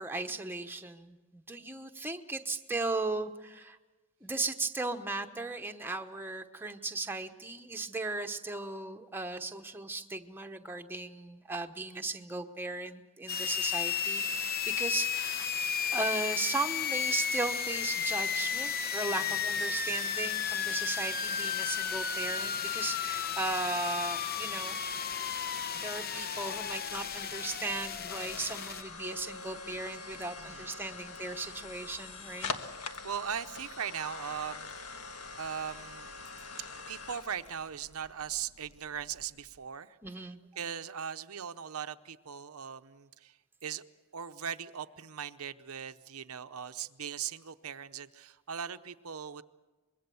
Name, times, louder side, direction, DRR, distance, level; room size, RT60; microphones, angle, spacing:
voice 1, 0.0-3.8 4.2-15.5 15.9-24.8 25.2-25.3 25.7-32.5 40.0-40.4, right 3 dB, 10° right, 5 dB, 1.0 m, -37 dB
sound 1, 13.3-28.8, left 7 dB, 45° left, 0.9 m, -33 dB
voice 2, 19.1-19.4 30.4-30.7 33.0-36.1 36.9-40.0 40.6-43.4 43.6-43.8 44.1-49.4, right 8 dB, 80° right, 9 dB, 0.8 m, -39 dB
sound 2, 26.6-39.6, left 4 dB, 90° left, 1.5 m, -44 dB
24.5 x 22.0 x 7.0 m, 1.2 s
head